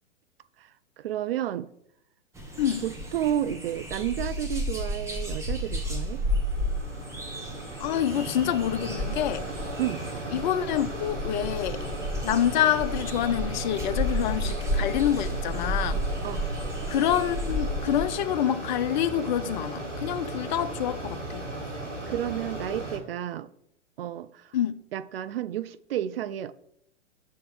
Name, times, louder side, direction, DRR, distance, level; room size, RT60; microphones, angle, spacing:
voice 1, 1.0-1.7 2.8-6.2 9.8-10.0 16.2-16.4 22.1-23.5 24.0-24.5 24.9-26.5, right 11 dB, 55° right, 0.5 m, -31 dB
sound 1, 2.3-18.1, equal, 10° right, 1.0 m, -32 dB
Mechanisms, 5.0-23.0, right 1 dB, 85° right, 1.8 m, -36 dB
voice 2, 7.8-9.4 10.3-11.8 12.2-16.0 16.9-21.5 24.5-24.7, left 10 dB, 40° left, 0.5 m, -27 dB
6.5 x 3.5 x 6.2 m
figure-of-eight pair, 105°, 36 cm